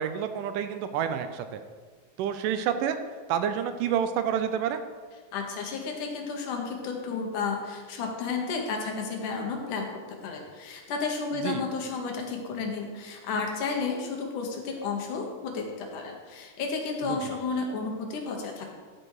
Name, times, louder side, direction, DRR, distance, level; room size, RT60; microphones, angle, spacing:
voice 1, 0.0-1.6 2.2-3.0 3.3-4.8 11.4-11.6 17.1-17.4, right 8 dB, 80° right, 9 dB, 2.1 m, -28 dB
voice 2, 5.3-9.9 10.2-18.7, left 4 dB, 70° left, 2 dB, 2.6 m, -32 dB
13.5 x 5.2 x 4.7 m, 1.5 s
omnidirectional pair, 3.9 m